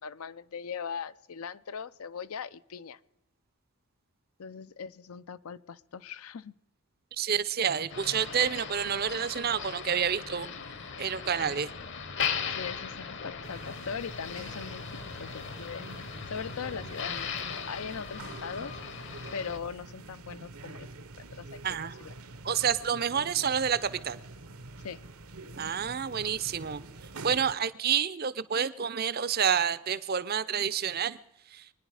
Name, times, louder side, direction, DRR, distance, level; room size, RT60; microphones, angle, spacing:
voice 1, 0.0-3.0 4.4-6.5 12.6-14.8 15.2-15.9 16.3-18.7 19.3-20.9 21.2-22.1 24.8-25.0, left 6 dB, 75° left, 15 dB, 0.5 m, -40 dB
voice 2, 7.2-10.5 11.0-11.7 21.6-21.9 22.4-24.2 25.6-26.8 27.2-31.2 31.5-31.7, right 7 dB, 45° right, 16 dB, 0.6 m, -29 dB
Motor vehicle (road), 7.9-19.6, left 6 dB, 55° left, 1.0 m, -38 dB
sound 1, 13.4-27.5, right 2 dB, 75° right, 1.1 m, -46 dB
25.0 x 10.0 x 4.8 m, 0.91 s
head